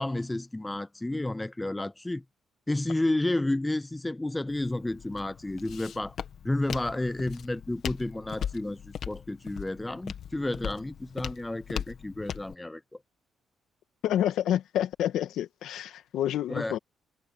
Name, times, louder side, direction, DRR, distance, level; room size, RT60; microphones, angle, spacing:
voice 1, 0.0-2.2 2.7-6.2 6.4-12.8 16.5-16.8, left 1 dB, 10° left, 0.5 m, -31 dB
Walk footsteps, 4.5-12.5, left 8 dB, 65° left, 2.0 m, -39 dB
voice 2, 14.0-16.8, left 11 dB, 80° left, 2.1 m, -28 dB
cardioid pair, 90°, 0 cm